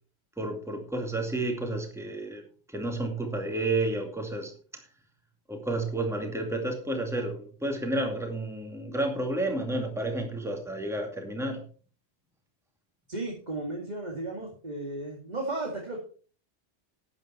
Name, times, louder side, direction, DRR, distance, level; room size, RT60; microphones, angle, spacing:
voice 1, 0.4-2.4 2.7-4.5 5.5-11.6, right 2 dB, ahead, 3 dB, 2.2 m, -31 dB
voice 2, 13.1-16.0, right 2 dB, 35° right, -1 dB, 2.4 m, -34 dB
12.0 x 9.0 x 4.4 m, 0.40 s
omnidirectional pair, 1.2 m